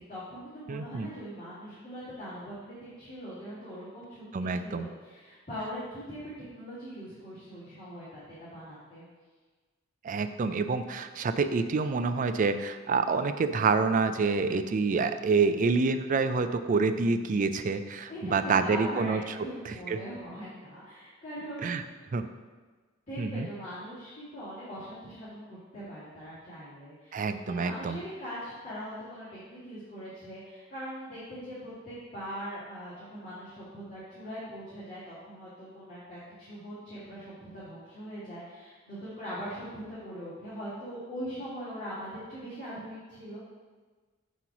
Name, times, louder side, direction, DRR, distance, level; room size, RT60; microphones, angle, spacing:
voice 1, 0.0-9.0 18.1-21.9 23.1-27.3 27.5-43.4, equal, 35° left, -12 dB, 2.1 m, -41 dB
voice 2, 0.7-1.1 4.3-4.9 10.0-19.2 19.7-20.0 21.6-21.8 22.1-22.3 23.2-23.5 27.1-28.0, right 4 dB, 40° right, 10 dB, 0.3 m, -27 dB
7.8 x 3.1 x 5.8 m, 1.4 s
head